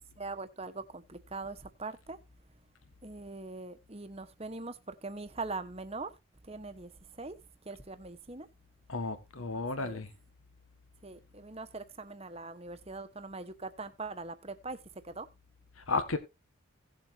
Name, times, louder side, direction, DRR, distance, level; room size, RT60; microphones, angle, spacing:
voice 1, 0.2-2.2 3.0-6.2 6.4-7.4 7.6-8.5 9.5-10.0 11.0-15.3, right 3 dB, 30° right, 1.1 m, -42 dB
voice 2, 8.9-10.1 15.9-16.2, left 3 dB, 80° left, 1.6 m, -33 dB
17.5 x 7.2 x 2.7 m
head